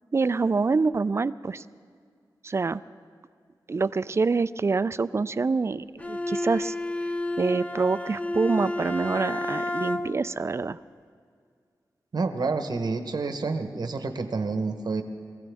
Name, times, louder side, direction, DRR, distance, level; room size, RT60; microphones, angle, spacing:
voice 1, 0.1-1.6 2.4-2.8 3.7-6.8 7.4-10.8, right 4 dB, 35° right, 15 dB, 0.3 m, -26 dB
Bowed string instrument, 6.0-10.4, left 1 dB, 15° left, 0.5 m, -31 dB
voice 2, 12.1-15.0, right 4 dB, 60° right, 7 dB, 1.0 m, -28 dB
22.5 x 15.5 x 3.5 m, 2.1 s
wide cardioid pair, 80°, 8 cm